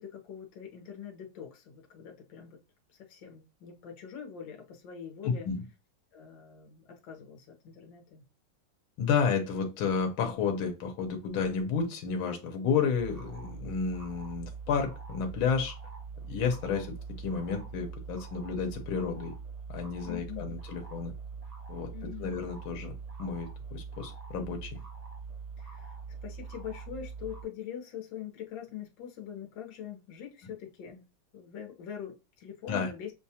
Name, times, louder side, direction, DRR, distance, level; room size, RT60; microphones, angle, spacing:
voice 1, 0.0-2.6 3.0-5.5 6.1-8.2 20.1-20.5 21.9-22.3 25.6-26.0 26.2-31.0 31.3-33.1, left 9 dB, 70° left, 1.6 m, -43 dB
voice 2, 5.2-5.6 9.0-15.8 16.2-19.3 19.7-21.1 21.7-21.9 22.2-22.9 23.2-24.8 32.7-32.9, left 6 dB, 85° left, 1.6 m, -31 dB
sound 1, 12.9-27.4, right 5 dB, 50° right, 0.4 m, -43 dB
6.7 x 2.4 x 2.8 m
omnidirectional pair, 2.2 m